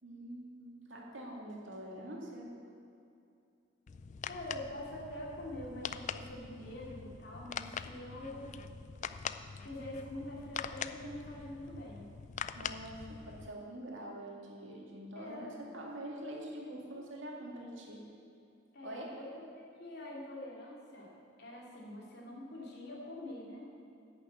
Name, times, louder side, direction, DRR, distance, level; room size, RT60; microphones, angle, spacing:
voice 1, 0.0-2.5 12.6-18.0 18.8-19.1, right 1 dB, 70° right, -1 dB, 2.2 m, -45 dB
sound 1, 3.9-13.5, left 7 dB, 40° left, 0.3 m, -43 dB
voice 2, 4.3-8.4 9.6-12.1 15.1-15.6 16.9-17.1 18.7-21.1 21.4-23.7, left 1 dB, 55° left, -3 dB, 2.7 m, -45 dB
10.5 x 6.8 x 8.2 m, 2.6 s
head